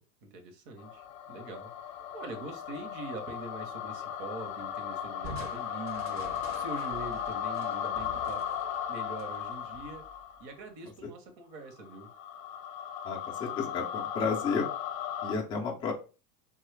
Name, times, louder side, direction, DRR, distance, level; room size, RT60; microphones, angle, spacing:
voice 1, 0.2-8.5 8.9-10.0 10.4-12.1, right 2 dB, 45° right, 5 dB, 0.9 m, -43 dB
sound 1, 0.8-10.5 11.7-15.3, left 9 dB, 55° left, 0.6 m, -36 dB
Crushing, 5.2-10.6, right 2 dB, 30° right, 0.6 m, -48 dB
voice 2, 13.0-14.7 15.2-15.9, left 5 dB, 10° left, -1 dB, 0.3 m, -32 dB
3.0 x 2.4 x 3.2 m, 0.34 s
hypercardioid pair, 115°, 47 cm